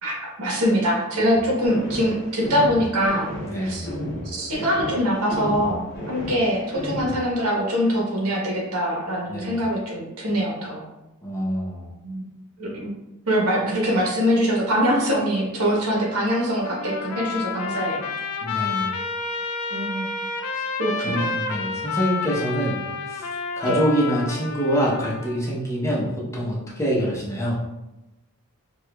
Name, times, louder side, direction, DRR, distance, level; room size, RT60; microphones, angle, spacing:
voice 1, 0.0-3.3 3.6-3.9 4.2-10.8 12.0-12.2 12.6-12.9 13.3-18.0 19.7-20.1 20.5-21.3 23.7-23.8, equal, 85° right, -2 dB, 1.1 m, -23 dB
sound 1, 1.3-7.3, equal, 50° left, 0.8 m, -33 dB
voice 2, 3.5-3.9 9.3-9.6 11.2-11.9 18.4-18.9 21.0-22.8 23.1-23.2 23.6-27.6, equal, 15° left, -5 dB, 0.7 m, -25 dB
Trumpet, 16.6-25.4, left 4 dB, 75° left, 0.4 m, -30 dB
4.6 x 2.4 x 2.2 m, 0.98 s
head